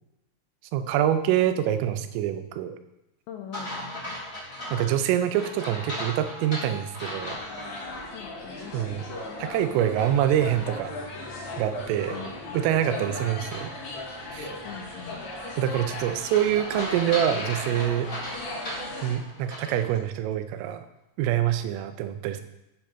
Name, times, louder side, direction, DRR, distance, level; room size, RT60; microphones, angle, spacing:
voice 1, 0.7-2.8 4.7-7.4 8.7-9.1 9.4-10.9 11.6-12.2 12.5-13.7 14.3-14.5 15.6-18.1 19.0-20.9 21.2-22.4, right 11 dB, 85° right, 10 dB, 3.3 m, -25 dB
voice 2, 3.3-4.2 8.1-9.0 12.1-12.6 14.6-15.2, left 7 dB, 85° left, 4 dB, 2.6 m, -43 dB
sound 1, 3.5-8.0 8.5-8.6 13.5-19.9, left 1 dB, 20° left, 2.7 m, -38 dB
sound 2, 7.1-19.1, left 2 dB, 65° left, 4.5 m, -37 dB
Piano, 10.3-18.4, left 1 dB, 45° right, 2.8 m, -54 dB
10.5 x 7.4 x 4.3 m, 0.91 s
omnidirectional pair, 5.7 m